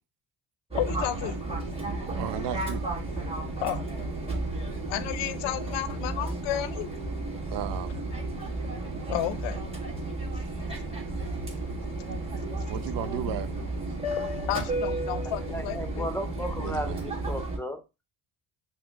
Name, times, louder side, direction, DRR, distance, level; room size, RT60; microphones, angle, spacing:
voice 1, 0.7-1.4 3.6-3.8 4.9-6.9 9.1-9.7 11.8-12.1 13.3-13.4 14.2-16.1, left 12 dB, 85° left, 0.6 m, -32 dB
Fixed-wing aircraft airplane, 0.7-17.6, right 2 dB, 15° right, 1.5 m, -33 dB
voice 2, 2.2-2.8 7.4-7.9 12.7-13.5 16.6-17.0, right 10 dB, 75° right, 0.6 m, -34 dB
voice 3, 15.4-17.8, equal, 5° left, 0.6 m, -35 dB
5.8 x 2.1 x 3.5 m
cardioid pair, 105°, 42 cm